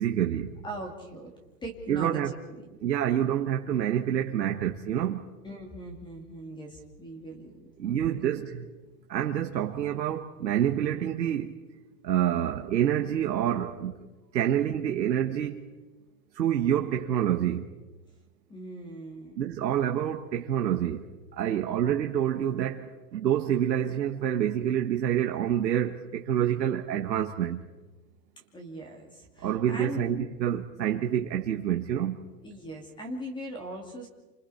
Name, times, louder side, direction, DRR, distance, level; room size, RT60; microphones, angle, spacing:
voice 1, 0.0-0.5 1.9-2.3 2.8-5.2 7.8-8.6 9.1-11.5 12.0-13.9 14.3-15.6 16.4-17.6 19.4-21.0 21.4-27.6 29.4-32.2, right 10 dB, 90° right, 1.6 m, -27 dB
voice 2, 0.6-1.3 1.6-2.2 5.4-8.5 18.5-19.4 21.4-21.6 28.5-30.0 32.4-34.1, right 1 dB, 10° left, 2.5 m, -40 dB
30.0 x 26.5 x 4.3 m
hypercardioid pair, 155°, 49 cm